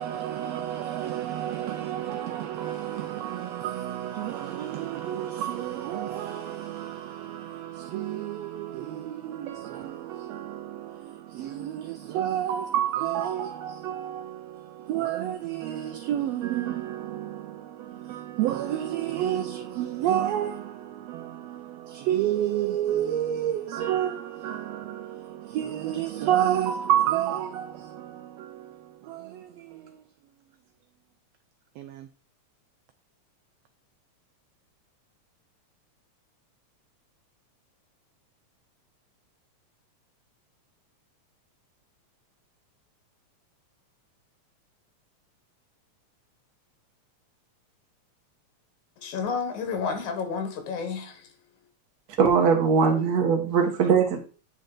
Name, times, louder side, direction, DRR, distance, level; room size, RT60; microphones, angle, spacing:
voice 1, 0.0-30.0 31.8-32.1, right 11 dB, 80° right, 1.5 m, -30 dB
voice 2, 49.0-51.3, left 5 dB, 85° left, 2.6 m, -31 dB
voice 3, 52.2-54.2, right 6 dB, 55° right, 1.1 m, -21 dB
9.0 x 4.0 x 3.8 m
omnidirectional pair, 3.4 m